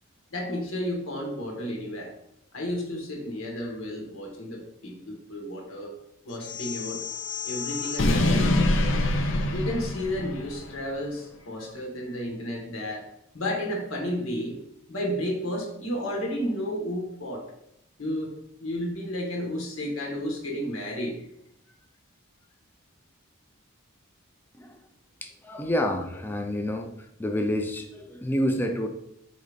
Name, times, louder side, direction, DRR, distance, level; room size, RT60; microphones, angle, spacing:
voice 1, 0.3-2.1 2.5-5.9 6.2-7.0 7.4-8.5 9.5-13.0 13.3-14.6 14.9-17.5 18.0-18.3 18.6-21.2, equal, 80° left, 0 dB, 1.2 m, -32 dB
sound 1, 6.4-10.7, left 2 dB, 65° left, 0.5 m, -26 dB
voice 2, 25.2-26.9 27.2-28.9, equal, 10° left, 4 dB, 0.4 m, -28 dB
3.8 x 2.8 x 4.9 m, 0.77 s
head